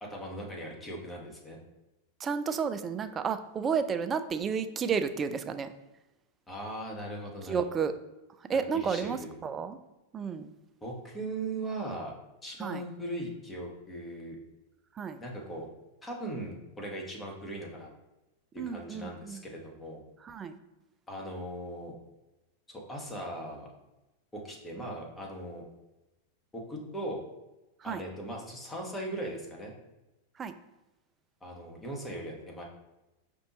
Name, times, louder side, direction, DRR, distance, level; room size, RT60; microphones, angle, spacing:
voice 1, 0.0-1.6 6.5-7.6 8.7-9.4 10.8-12.1 12.4-14.4 15.2-15.7 16.0-17.9 18.5-20.0 21.1-21.9 22.7-23.7 24.3-25.6 26.5-27.2 27.8-29.7 31.4-32.6, right 1 dB, 15° left, -1 dB, 1.0 m, -39 dB
voice 2, 2.2-5.7 7.5-7.9 8.5-9.8 10.1-10.5 12.6-12.8 15.0-15.2 18.6-19.4 20.2-20.6 27.8-28.0 30.4-30.5, right 6 dB, 20° right, 9 dB, 0.3 m, -31 dB
5.1 x 2.6 x 2.9 m, 1.0 s
figure-of-eight pair, 90°, 0 cm